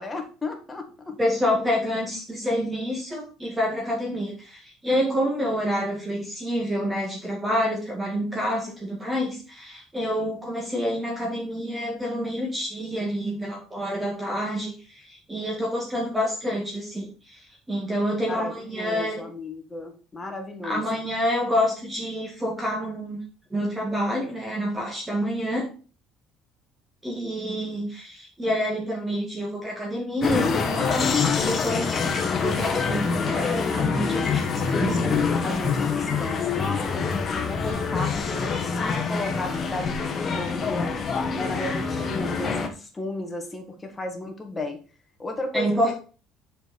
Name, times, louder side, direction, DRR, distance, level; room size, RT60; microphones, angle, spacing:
voice 1, 0.0-1.2 18.3-20.8 35.4-40.9 41.3-44.8 45.2-45.9, left 2 dB, 15° left, 4 dB, 1.8 m, -34 dB
voice 2, 1.2-17.4 17.7-19.2 20.6-23.2 23.5-25.7 27.0-32.0 32.4-35.2 45.5-45.9, equal, 15° right, -1 dB, 1.9 m, -28 dB
sound 1, 30.2-42.7, left 5 dB, 30° left, 1.4 m, -25 dB
7.2 x 5.1 x 5.2 m, 0.37 s
cardioid pair, 130°, 0 cm